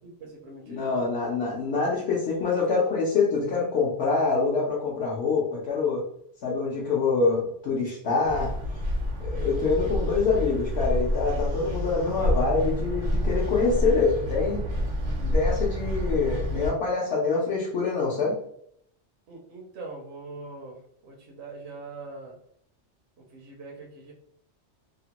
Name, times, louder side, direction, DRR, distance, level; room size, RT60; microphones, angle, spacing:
voice 1, 0.0-1.1 19.3-22.4 23.2-24.1, right 3 dB, 70° right, 0 dB, 0.8 m, -42 dB
voice 2, 0.7-6.0 6.4-8.5 9.2-14.6 15.2-18.3, left 4 dB, 70° left, -4 dB, 0.9 m, -25 dB
sound 1, 8.3-16.7, equal, 90° right, 1.1 m, -28 dB
2.8 x 2.1 x 2.8 m, 0.69 s
omnidirectional pair, 1.2 m